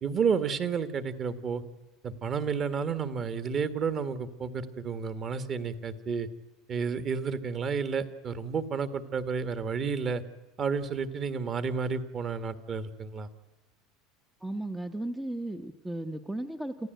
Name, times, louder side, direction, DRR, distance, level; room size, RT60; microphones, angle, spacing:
voice 1, 0.0-1.6 2.0-6.3 6.7-10.2 10.6-13.3, right 6 dB, 30° right, 12 dB, 1.7 m, -31 dB
voice 2, 14.4-16.9, right 1 dB, 5° right, 7 dB, 0.9 m, -35 dB
28.0 x 15.5 x 9.1 m, 1.1 s
cardioid pair, 150°, 0 cm